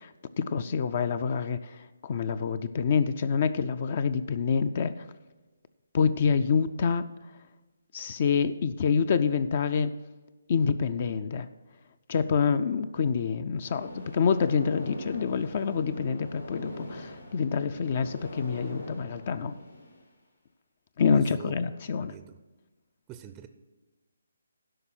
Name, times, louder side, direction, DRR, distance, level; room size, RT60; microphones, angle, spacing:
voice 1, 0.0-5.1 5.9-7.1 7.9-9.9 10.5-11.5 12.1-19.6 21.0-22.1, left 6 dB, 40° left, 13 dB, 0.4 m, -27 dB
sound 1, 13.6-20.0, left 1 dB, 80° left, 2.4 m, -42 dB
voice 2, 21.1-21.5 22.0-22.4 23.1-23.5, right 10 dB, 20° right, 9 dB, 0.5 m, -45 dB
12.5 x 5.4 x 6.2 m, 1.2 s
figure-of-eight pair, 145°, 0 cm